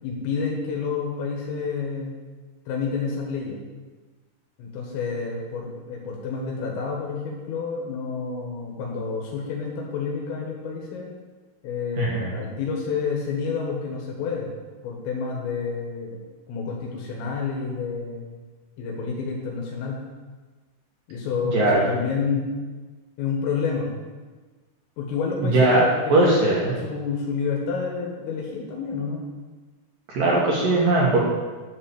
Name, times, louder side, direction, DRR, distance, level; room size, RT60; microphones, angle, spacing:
voice 1, 0.0-2.1 2.7-3.6 4.6-11.1 11.6-14.5 14.8-16.2 16.5-18.3 18.8-20.0 21.1-22.5 23.2-23.9 25.0-29.2, left 5 dB, 85° left, -1 dB, 4.1 m, -29 dB
voice 2, 12.0-12.3 21.5-21.8 25.5-26.7 30.1-31.2, right 2 dB, 60° right, -4 dB, 2.6 m, -19 dB
11.0 x 5.8 x 7.1 m, 1.3 s
omnidirectional pair, 5.8 m